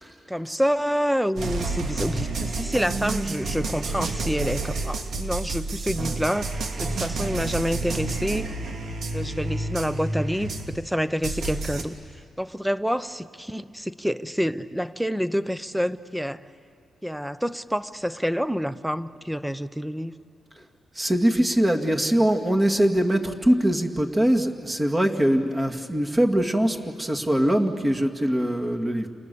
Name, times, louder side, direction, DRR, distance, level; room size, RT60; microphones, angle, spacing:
voice 1, 0.3-8.5 9.1-11.9 12.4-16.4 17.0-20.1, equal, 5° right, 13 dB, 0.8 m, -27 dB
sound 1, 1.4-10.9 11.2-11.8, right 2 dB, 65° right, 2.7 m, -29 dB
voice 2, 21.0-29.1, right 1 dB, 20° right, 3 dB, 2.2 m, -22 dB
29.5 x 27.5 x 7.0 m, 2.4 s
cardioid pair, 90°, 0 cm